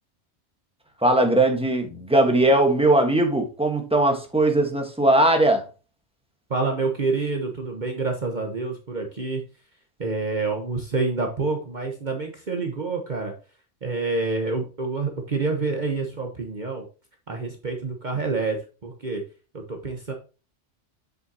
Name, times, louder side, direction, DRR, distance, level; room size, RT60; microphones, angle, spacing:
voice 1, 1.0-5.6, right 1 dB, 5° right, 1.2 m, -19 dB
voice 2, 6.5-9.4 10.0-13.3 13.8-16.8 17.3-19.2 19.5-20.1, right 3 dB, 40° right, 1.2 m, -27 dB
7.9 x 6.7 x 2.8 m
omnidirectional pair, 1.2 m